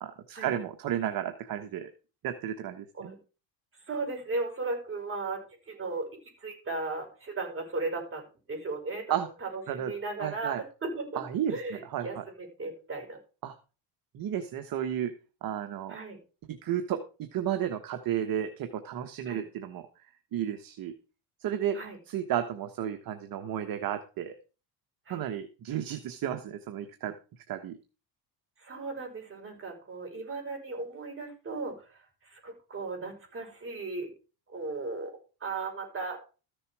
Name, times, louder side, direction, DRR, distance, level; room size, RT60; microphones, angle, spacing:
voice 1, 0.0-1.9 2.2-3.1 9.1-9.3 9.7-9.9 10.2-10.6 11.1-12.2 13.4-13.5 14.1-15.1 15.4-16.0 16.5-19.9 20.3-20.9 21.4-21.8 22.1-24.3 25.1-27.1 27.5-27.8, right 10 dB, 50° right, 7 dB, 1.4 m, -33 dB
voice 2, 3.9-6.1 6.4-11.2 11.5-13.2 15.9-16.2 19.3-19.4 21.7-22.0 25.1-25.2 28.6-34.1 34.5-36.3, right 3 dB, 30° right, 2 dB, 5.8 m, -36 dB
14.0 x 6.9 x 4.8 m, 0.34 s
cardioid pair, 105°, 44 cm